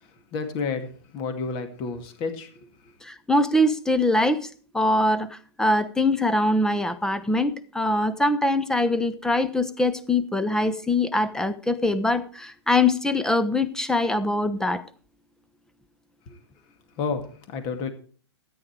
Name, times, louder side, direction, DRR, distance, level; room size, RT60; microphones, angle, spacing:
voice 1, 0.0-2.7 16.3-16.4 17.0-17.9, left 4 dB, 35° left, 2.2 m, -31 dB
voice 2, 3.0-4.5 4.7-14.8, left 2 dB, 5° left, 0.8 m, -23 dB
13.5 x 9.4 x 4.7 m
hypercardioid pair, 120°, 14 cm